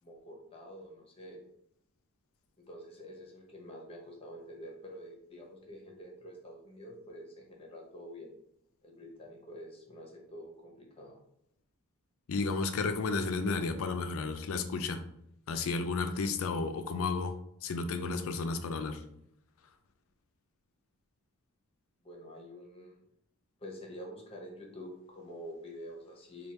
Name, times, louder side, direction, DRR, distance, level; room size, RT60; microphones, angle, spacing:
voice 1, 0.0-1.4 2.6-8.3 8.8-11.2 22.0-23.0 23.6-26.5, equal, 25° left, 0 dB, 0.9 m, -47 dB
voice 2, 12.3-15.0 15.5-19.0, left 4 dB, 65° left, 8 dB, 0.4 m, -32 dB
3.4 x 2.3 x 4.2 m, 0.75 s
head